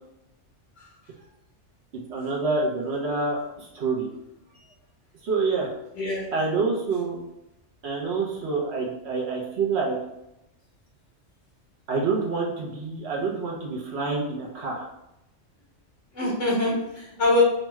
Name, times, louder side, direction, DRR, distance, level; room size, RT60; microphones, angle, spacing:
voice 1, 1.9-4.1 5.2-5.7 6.3-7.2 7.8-10.0 11.9-14.8, right 4 dB, 70° right, -3 dB, 1.0 m, -27 dB
voice 2, 6.0-6.3 16.1-17.4, left 1 dB, 90° left, -4 dB, 1.5 m, -24 dB
5.2 x 2.3 x 3.1 m, 0.86 s
omnidirectional pair, 1.2 m